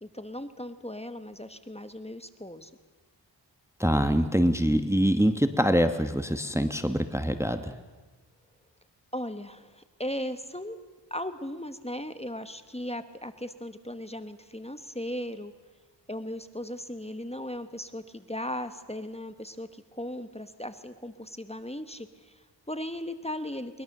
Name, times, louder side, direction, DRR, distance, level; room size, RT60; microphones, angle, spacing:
voice 1, 0.0-2.7 9.1-10.8 11.1-15.5 16.1-23.8, left 1 dB, 15° left, 10 dB, 1.2 m, -37 dB
voice 2, 3.8-7.7, equal, 5° right, 8 dB, 1.1 m, -24 dB
22.5 x 20.5 x 6.7 m, 1.3 s
wide cardioid pair, 50°, 44 cm